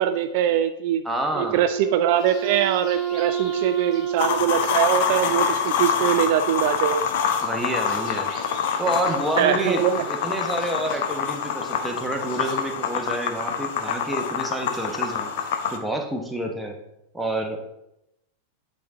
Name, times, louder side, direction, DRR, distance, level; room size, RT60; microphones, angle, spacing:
voice 1, 0.0-1.0 1.3-7.0 9.4-10.0, right 10 dB, 50° right, 9 dB, 0.3 m, -22 dB
voice 2, 1.0-1.7 7.4-8.3 8.8-16.7 17.1-17.6, right 1 dB, 5° right, 2 dB, 1.0 m, -28 dB
Wind instrument woodwind instrument, 1.3-5.8, right 8 dB, 30° right, 1.0 m, -30 dB
sound 1, 2.1-12.6, left 3 dB, 35° left, 1.4 m, -46 dB
sound 2, 4.2-15.8, left 7 dB, 50° left, 0.7 m, -26 dB
8.2 x 4.1 x 3.6 m, 0.86 s
figure-of-eight pair, 90°, 0 cm